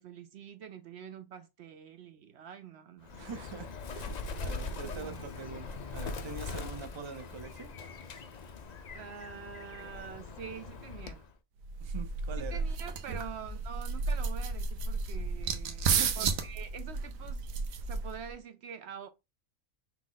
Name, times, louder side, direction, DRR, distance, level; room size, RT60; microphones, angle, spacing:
voice 1, 0.0-3.3 4.8-5.2 8.9-11.2 12.4-19.1, right 7 dB, 65° right, 0.7 m, -46 dB
Bird, 3.0-11.3, left 3 dB, 50° left, 0.5 m, -41 dB
voice 2, 3.1-3.7 3.9-4.2 4.4-7.7 11.8-12.6 13.1-13.2 15.8-16.3, right 5 dB, 35° right, 0.4 m, -43 dB
sound 1, 11.6-18.3, right 5 dB, 90° right, 1.2 m, -33 dB
5.8 x 2.4 x 3.9 m
omnidirectional pair, 1.4 m